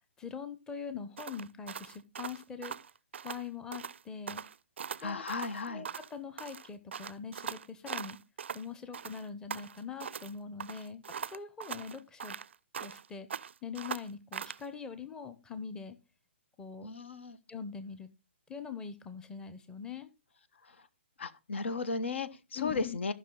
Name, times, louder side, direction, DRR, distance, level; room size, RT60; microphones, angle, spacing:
voice 1, 0.2-2.7 3.2-4.4 5.0-5.2 5.7-5.9 6.1-8.2 8.5-12.4 12.8-16.0 16.6-16.9 17.5-18.1 18.5-20.1 22.6-23.0, left 6 dB, 10° left, 1.0 m, -43 dB
sound 1, 1.2-3.4 3.7-4.0 4.3-6.1 6.4-8.7 8.9-10.3 10.6-13.1 13.3-14.6, right 7 dB, 65° right, 0.4 m, -41 dB
voice 2, 5.0-5.9 16.8-17.4 20.6-20.9 21.2-23.1, left 4 dB, 65° left, 1.2 m, -35 dB
14.5 x 5.9 x 3.9 m
figure-of-eight pair, 135°, 7 cm